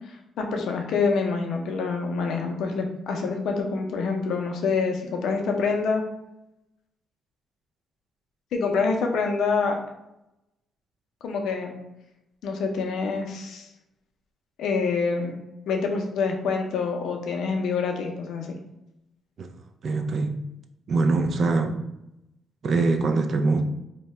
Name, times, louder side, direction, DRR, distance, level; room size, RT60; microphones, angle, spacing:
voice 1, 0.1-6.0 8.5-9.8 11.2-11.8 12.4-13.7 14.6-15.4 15.7-18.6, left 4 dB, 75° left, 3 dB, 0.5 m, -26 dB
voice 2, 19.8-20.3 20.9-21.8 22.6-23.6, right 3 dB, 55° right, 5 dB, 0.3 m, -23 dB
2.7 x 2.1 x 3.1 m, 0.88 s
cardioid pair, 90°, 0 cm